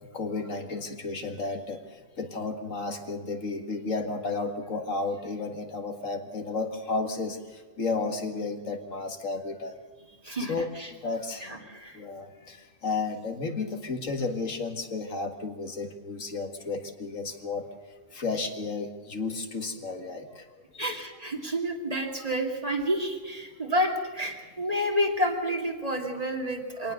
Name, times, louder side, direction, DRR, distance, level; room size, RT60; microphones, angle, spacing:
voice 1, 0.1-9.8 10.5-11.6 11.9-17.7 18.1-20.5 20.7-21.0 26.8-26.9, left 3 dB, 70° left, 5 dB, 2.2 m, -33 dB
voice 2, 10.2-10.9 11.4-12.0 20.8-26.9, equal, 25° right, 2 dB, 2.6 m, -29 dB
24.0 x 18.5 x 6.6 m, 1.3 s
omnidirectional pair, 1.4 m